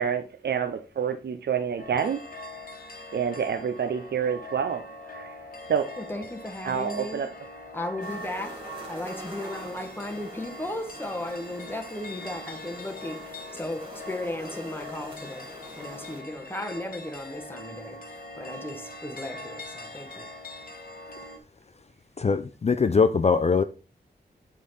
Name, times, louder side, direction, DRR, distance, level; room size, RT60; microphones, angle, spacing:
voice 1, 0.0-2.2 3.1-4.8 5.1-5.3 5.7-5.9 6.6-7.3, right 7 dB, 85° right, 0.6 m, -28 dB
sound 1, 1.8-21.4, left 1 dB, 55° left, 1.3 m, -42 dB
voice 2, 6.0-7.2 7.7-15.5 15.8-18.0 18.3-20.3, left 1 dB, 10° left, 1.3 m, -36 dB
Wasps and bees in our garden, 8.0-16.2, right 1 dB, 30° right, 2.9 m, -45 dB
voice 3, 22.2-23.6, left 5 dB, 40° left, 0.5 m, -22 dB
8.4 x 3.8 x 4.1 m
wide cardioid pair, 70°, 17 cm